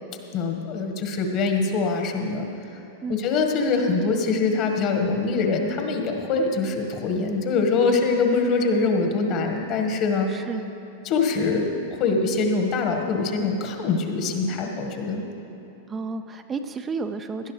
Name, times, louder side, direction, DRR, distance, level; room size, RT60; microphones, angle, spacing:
voice 1, 0.3-2.5 3.1-10.3 11.0-11.7 12.0-15.3, left 4 dB, 45° left, 3 dB, 1.7 m, -23 dB
voice 2, 10.3-10.6 15.9-17.5, right 4 dB, 25° right, 7 dB, 0.5 m, -31 dB
17.5 x 12.0 x 3.3 m, 3.0 s
hypercardioid pair, 100°, 0 cm